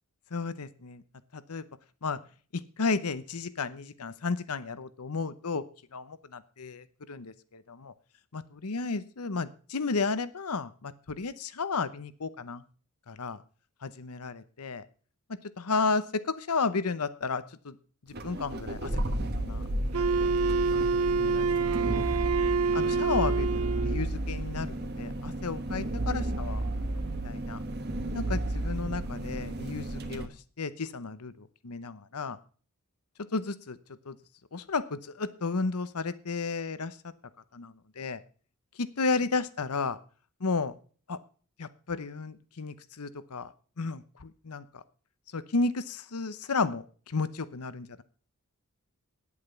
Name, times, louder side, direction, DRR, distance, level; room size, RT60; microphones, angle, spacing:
voice 1, 0.3-1.0 1.3-1.6 2.0-2.2 2.5-5.6 5.9-7.9 8.3-12.6 13.1-13.4 13.8-14.9 15.3-17.8 18.2-18.9 19.4-20.2 20.7-20.8 21.2-22.0 22.7-26.7 27.2-27.6 28.1-32.4 33.3-33.8 34.0-34.2 34.5-37.0 37.5-38.2 38.8-40.0 40.4-40.8 41.1-41.2 41.6-44.8 45.3-48.0, left 4 dB, 80° left, 15 dB, 0.9 m, -33 dB
sound 1, 18.1-30.2, right 1 dB, 45° right, 1.3 m, -32 dB
Wind instrument woodwind instrument, 19.9-24.1, right 4 dB, 75° right, 0.7 m, -27 dB
9.9 x 8.5 x 6.9 m, 0.41 s
head